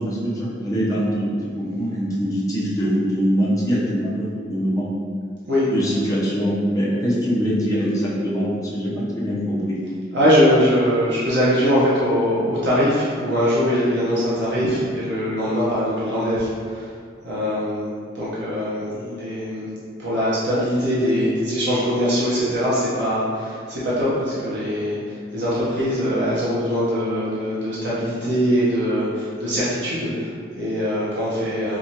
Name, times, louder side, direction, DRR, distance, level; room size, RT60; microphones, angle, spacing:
voice 1, 0.0-4.9 5.7-9.8, equal, 20° left, -7 dB, 0.7 m, -23 dB
voice 2, 10.1-16.9 17.2-19.6 20.0-25.0 25.3-31.8, equal, 70° right, -9 dB, 0.8 m, -22 dB
4.6 x 2.4 x 2.8 m, 2.1 s
head